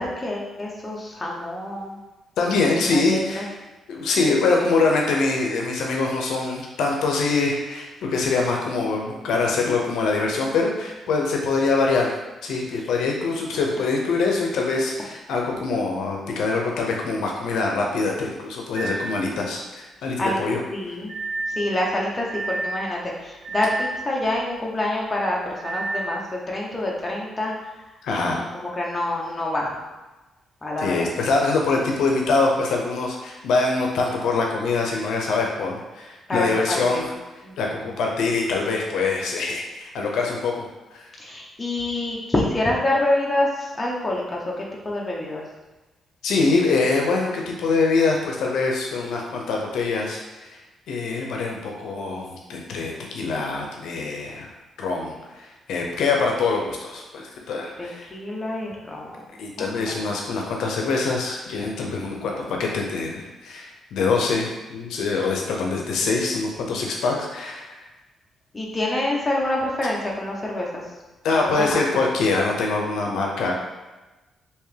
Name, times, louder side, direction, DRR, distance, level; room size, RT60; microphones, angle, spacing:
voice 1, 0.0-2.0 2.9-3.5 20.2-21.1 21.5-27.5 28.2-29.8 30.6-31.1 36.3-37.1 37.4-37.8 41.2-45.4 57.8-59.2 59.6-60.1 68.5-70.8 71.3-71.8, left 1 dB, 20° left, -3 dB, 0.8 m, -27 dB
voice 2, 2.4-3.5 3.9-12.1 12.4-20.6 28.0-28.4 30.8-37.0 37.6-41.1 46.2-50.6 50.9-54.5 54.8-58.1 59.4-67.8 71.2-73.5, left 3 dB, 85° left, 0 dB, 0.6 m, -24 dB
sound 1, 18.8-19.1 21.1-21.6 22.2-22.8 23.4-24.0 25.6-26.1, right 3 dB, 80° right, 0.5 m, -29 dB
3.4 x 2.9 x 3.3 m, 1.1 s
cardioid pair, 110°, 0 cm